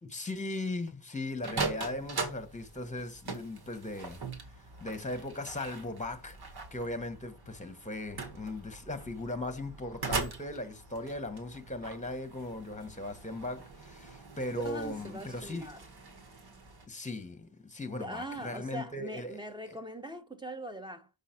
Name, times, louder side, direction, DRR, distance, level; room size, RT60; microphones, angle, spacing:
voice 1, 0.0-4.2 4.8-6.4 6.7-15.6 16.9-19.4 19.7-19.8, left 2 dB, 20° left, 1.5 m, -38 dB
sound 1, 1.4-16.9, right 4 dB, 70° right, 2.0 m, -41 dB
voice 2, 14.5-15.8 18.0-21.1, right 1 dB, 10° right, 1.6 m, -41 dB
6.2 x 5.4 x 6.0 m
cardioid pair, 60°, 39 cm